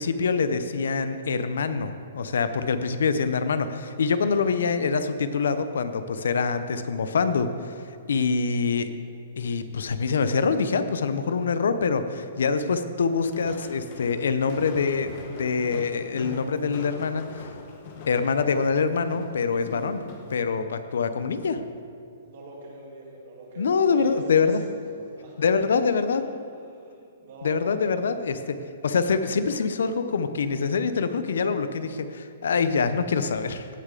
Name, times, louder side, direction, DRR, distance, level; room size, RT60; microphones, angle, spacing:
voice 1, 0.0-7.7 8.1-8.9 9.4-17.5 18.1-20.0 20.3-21.6 23.6-24.6 25.4-26.2 27.4-33.7, left 5 dB, 80° left, 11 dB, 0.6 m, -25 dB
Walk footsteps, 13.2-20.4, left 3 dB, 30° left, 0.9 m, -41 dB
voice 2, 22.2-24.8 25.1-25.4 26.1-26.2 26.7-26.9 27.2-28.0, right 2 dB, 40° right, -3 dB, 2.5 m, -43 dB
16.5 x 6.5 x 3.8 m, 2.4 s
hypercardioid pair, 175°, 0 cm